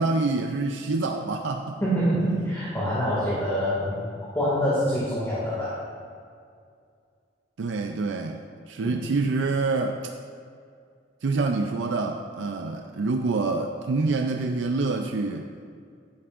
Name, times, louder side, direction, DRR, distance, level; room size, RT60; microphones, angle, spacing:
voice 1, 0.0-1.8 7.6-8.4 8.7-10.0 11.2-15.5, right 3 dB, 80° right, 4 dB, 0.5 m, -26 dB
voice 2, 1.8-4.0 4.3-5.8 8.8-9.0, equal, 15° left, -9 dB, 2.1 m, -25 dB
11.5 x 10.5 x 2.5 m, 2.2 s
head